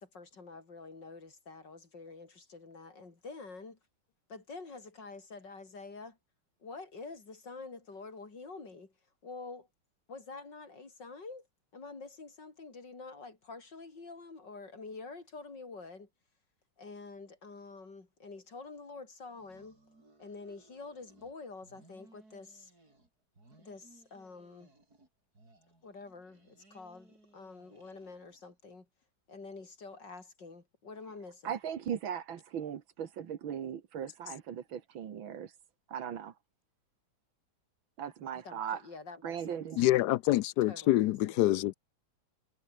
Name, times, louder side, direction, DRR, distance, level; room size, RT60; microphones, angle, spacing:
voice 1, 0.0-3.8 4.3-6.2 6.6-8.9 9.2-9.7 10.1-11.5 11.7-16.1 16.8-19.8 20.2-22.7 23.6-24.7 25.8-28.9 29.3-31.6 38.3-39.6 40.7-41.4, left 3 dB, 55° left, 4.5 m, -47 dB
sound 1, 19.3-21.3 21.6-23.1 23.3-25.1 25.3-28.5, right 2 dB, 45° right, 6.8 m, -63 dB
voice 2, 31.4-35.5 35.9-36.3 38.0-38.8 39.2-39.9, right 8 dB, 65° right, 2.1 m, -38 dB
voice 3, 39.8-41.7, left 15 dB, 85° left, 0.9 m, -26 dB
omnidirectional pair, 2.4 m